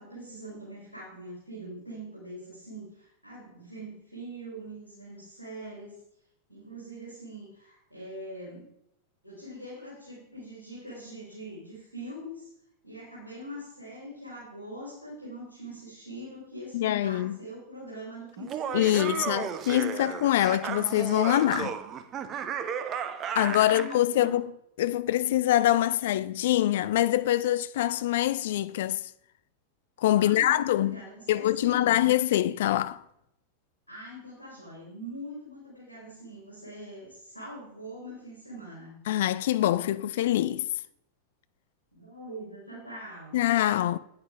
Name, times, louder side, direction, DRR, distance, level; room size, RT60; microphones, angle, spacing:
voice 1, 0.0-6.0 6.5-8.7 9.2-12.5 12.8-19.3 23.3-24.4 30.1-32.0 33.9-39.0 41.9-43.4, right 1 dB, 90° right, 3.0 m, -43 dB
voice 2, 16.7-17.4 18.7-21.8 23.4-24.5 24.8-29.0 30.0-31.0 31.3-33.0 39.1-40.7 43.3-44.0, left 13 dB, 55° left, 0.3 m, -24 dB
Laughter, 18.4-24.0, right 8 dB, 30° right, 0.7 m, -34 dB
8.9 x 8.5 x 3.4 m
figure-of-eight pair, 90°, 0 cm